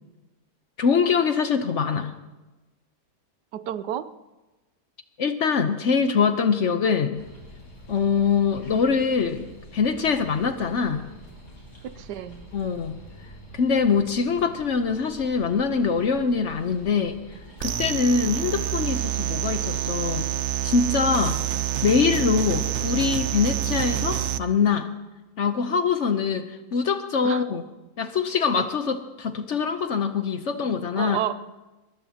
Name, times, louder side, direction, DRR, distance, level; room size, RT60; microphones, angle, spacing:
voice 1, 0.8-2.1 5.2-7.2 7.9-9.5 9.7-11.1 12.5-13.0 13.5-17.2 17.6-20.3 20.6-21.4 21.8-24.9 25.4-27.6 28.0-31.2, left 5 dB, 55° left, 8 dB, 1.0 m, -23 dB
voice 2, 3.5-4.1 11.8-12.4 27.2-27.4 31.0-31.3, right 11 dB, 85° right, 14 dB, 1.3 m, -30 dB
sound 1, 7.1-21.6, equal, 75° left, 5.1 m, -46 dB
sound 2, 17.6-24.4, right 11 dB, 60° right, 0.7 m, -27 dB
22.0 x 20.0 x 2.9 m, 1.1 s
omnidirectional pair, 1.8 m